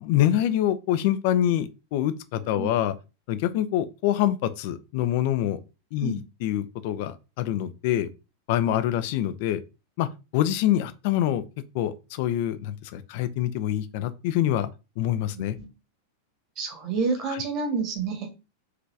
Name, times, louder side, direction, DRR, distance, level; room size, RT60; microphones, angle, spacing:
voice 1, 0.0-2.9 3.3-5.6 5.9-8.1 8.5-9.6 10.0-10.1 10.3-11.4 11.7-14.7 15.0-15.6, left 12 dB, 50° left, 0.5 m, -25 dB
voice 2, 15.3-15.7 16.6-18.4, right 4 dB, 40° right, 1.7 m, -29 dB
4.8 x 3.4 x 3.3 m
figure-of-eight pair, 90°, 0 cm